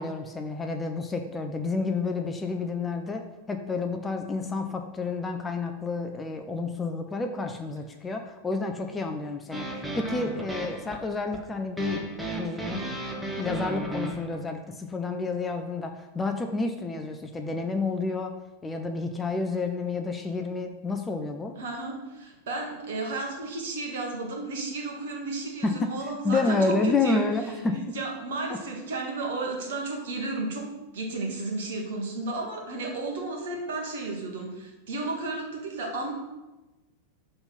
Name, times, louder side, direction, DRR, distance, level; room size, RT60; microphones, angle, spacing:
voice 1, 0.0-12.0 12.3-13.0 13.4-18.3 18.6-21.5 25.6-25.9 26.2-28.0 28.5-28.6, left 3 dB, 15° left, 5 dB, 0.6 m, -30 dB
sound 1, 9.5-14.4, right 1 dB, 5° right, 1.1 m, -34 dB
voice 2, 21.6-27.2 27.7-30.6 30.9-36.1, right 2 dB, 55° right, 0 dB, 1.7 m, -33 dB
5.8 x 3.9 x 5.7 m, 1.1 s
figure-of-eight pair, 90°, 0 cm